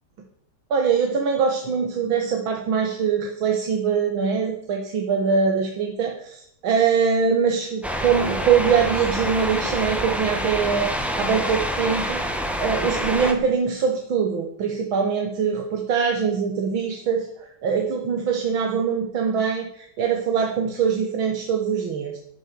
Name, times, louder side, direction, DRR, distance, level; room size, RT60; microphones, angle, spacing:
voice 1, 0.7-12.2 12.6-22.2, right 6 dB, 85° right, 3 dB, 2.3 m, -23 dB
sound 1, 7.8-13.3, equal, ahead, 1.8 m, -27 dB
12.0 x 11.5 x 6.8 m, 0.69 s
omnidirectional pair, 2.1 m